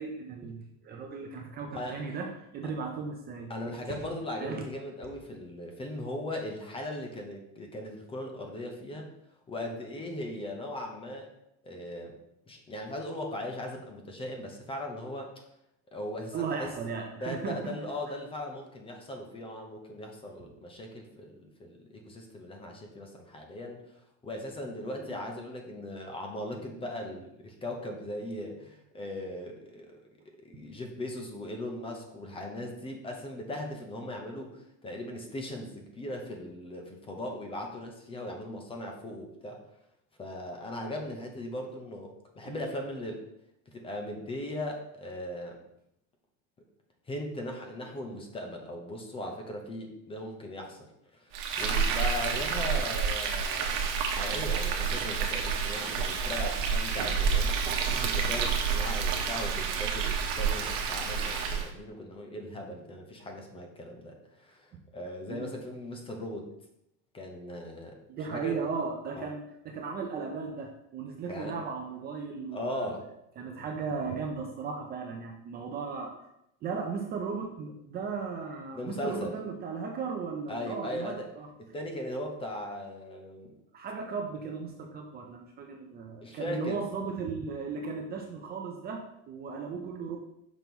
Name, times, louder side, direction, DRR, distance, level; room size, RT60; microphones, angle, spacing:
voice 1, 0.0-3.5 3.9-4.0 4.4-4.6 16.3-17.6 25.0-25.1 42.4-42.6 65.3-65.5 68.1-72.9 73.4-76.1 76.6-81.5 83.7-90.2, right 5 dB, 25° right, 1 dB, 0.5 m, -36 dB
voice 2, 1.7-2.0 3.5-9.1 9.5-11.3 11.6-12.1 12.5-15.3 15.9-16.7 17.2-23.8 24.2-30.0 30.4-39.6 40.2-43.2 43.7-45.6 47.1-53.8 54.1-66.5 67.1-68.0 68.2-68.5 69.2-69.3 71.3-71.5 72.5-73.1 73.4-73.5 78.7-79.3 80.5-81.3 81.6-83.5 86.2-86.8, left 1 dB, 15° left, 2 dB, 0.6 m, -38 dB
Frying (food), 51.3-61.7, right 6 dB, 70° right, 1.1 m, -29 dB
6.1 x 3.0 x 5.2 m, 0.79 s
cardioid pair, 165°, 37 cm